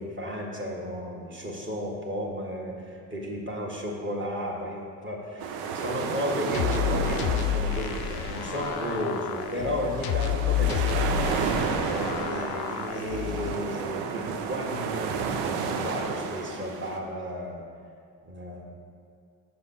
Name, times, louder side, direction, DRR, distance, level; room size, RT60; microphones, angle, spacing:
voice 1, 0.0-17.6 18.2-18.6, equal, 25° right, -2 dB, 1.5 m, -34 dB
sound 1, 5.4-17.0, right 5 dB, 70° right, 0.7 m, -32 dB
sound 2, 6.5-13.5, left 11 dB, 55° left, 0.5 m, -30 dB
6.7 x 5.6 x 4.3 m, 2.3 s
hypercardioid pair, 45°, 46 cm